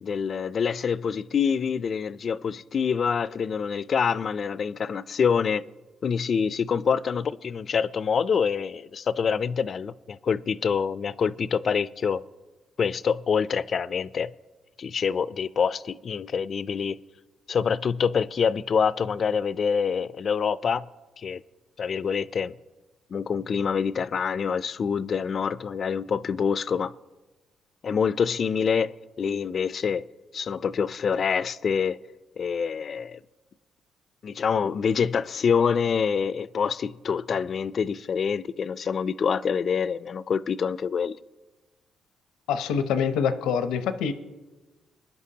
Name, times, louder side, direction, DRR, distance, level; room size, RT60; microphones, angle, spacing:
voice 1, 0.0-5.6 6.0-12.2 12.8-14.3 14.8-17.0 17.5-20.9 21.2-21.4 21.8-22.5 23.1-26.9 27.8-30.1 30.3-32.0 32.4-33.2 34.2-41.2, left 6 dB, 50° left, 0.3 m, -26 dB
voice 2, 42.5-44.1, left 7 dB, 90° left, 0.6 m, -25 dB
20.5 x 10.5 x 2.8 m
cardioid pair, 90°, 0 cm